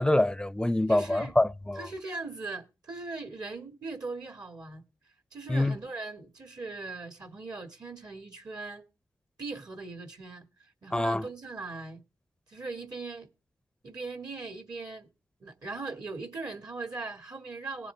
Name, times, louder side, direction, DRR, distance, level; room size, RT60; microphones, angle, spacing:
voice 1, 0.0-1.9 5.5-5.8 10.9-11.2, left 1 dB, 10° left, 0.5 m, -25 dB
voice 2, 0.9-1.3 1.7-4.8 5.3-8.8 9.4-12.0 12.5-13.3 13.8-15.1 15.4-17.9, right 3 dB, 55° right, 1.7 m, -39 dB
18.0 x 7.0 x 3.3 m
cardioid pair, 55°, 8 cm